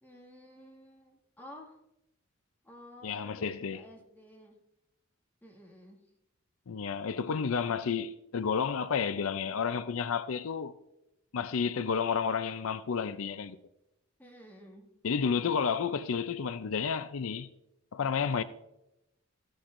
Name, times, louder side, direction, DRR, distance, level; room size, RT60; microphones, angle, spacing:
voice 1, 0.0-1.8 2.6-4.6 5.4-6.0 14.2-14.9, left 1 dB, 10° left, 2.0 m, -52 dB
voice 2, 3.0-3.8 6.7-10.8 11.3-13.6 15.0-17.5 17.9-18.4, left 6 dB, 85° left, 0.5 m, -31 dB
15.5 x 10.0 x 2.6 m
head